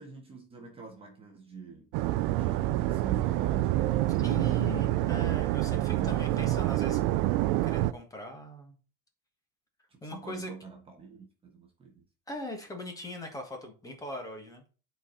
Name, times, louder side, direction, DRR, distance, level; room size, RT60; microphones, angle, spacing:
voice 1, 0.0-1.9 2.3-5.1 5.8-6.9 9.9-12.1, right 5 dB, 20° right, 1.2 m, -45 dB
sound 1, 1.9-7.9, right 15 dB, 60° right, 0.6 m, -27 dB
voice 2, 4.2-7.0 7.6-8.8 10.0-10.5 12.3-14.6, left 1 dB, 10° left, 1.5 m, -40 dB
11.0 x 4.5 x 3.9 m
cardioid pair, 175°, 30 cm